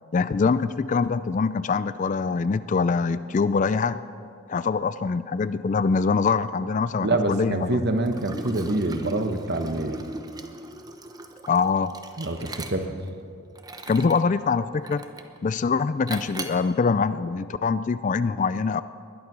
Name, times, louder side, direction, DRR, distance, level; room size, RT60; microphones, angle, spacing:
voice 1, 0.1-4.0 4.5-7.8 11.5-12.0 13.9-15.0 15.4-18.8, left 5 dB, 35° left, 14 dB, 0.3 m, -24 dB
voice 2, 7.0-10.0 12.2-13.0, right 2 dB, 50° right, 7 dB, 1.1 m, -26 dB
Liquid, 8.1-13.1 13.5-14.3 14.9-15.4 16.1-16.7, right 2 dB, 20° right, 0.8 m, -38 dB
20.0 x 11.5 x 6.1 m, 2.5 s
head